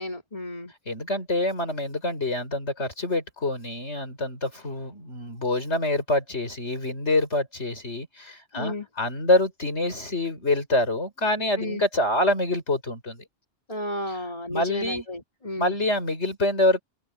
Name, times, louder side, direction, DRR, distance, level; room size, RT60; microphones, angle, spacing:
voice 1, 0.0-0.7 8.5-8.9 11.6-11.8 13.7-15.7, left 1 dB, 30° left, 3.4 m, -32 dB
voice 2, 0.9-13.2 14.5-15.0 15.6-16.8, left 2 dB, 75° left, 6.2 m, -26 dB
open air
omnidirectional pair, 1.2 m